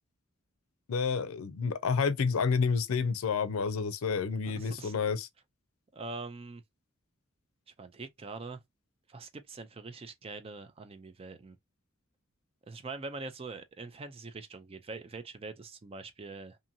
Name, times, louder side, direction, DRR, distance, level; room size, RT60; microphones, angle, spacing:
voice 1, 0.9-5.3, left 5 dB, 80° left, 0.5 m, -29 dB
voice 2, 4.5-4.9 5.9-6.6 7.8-8.6 9.1-11.6 12.7-16.6, right 3 dB, 25° right, 0.4 m, -43 dB
2.7 x 2.6 x 2.6 m
head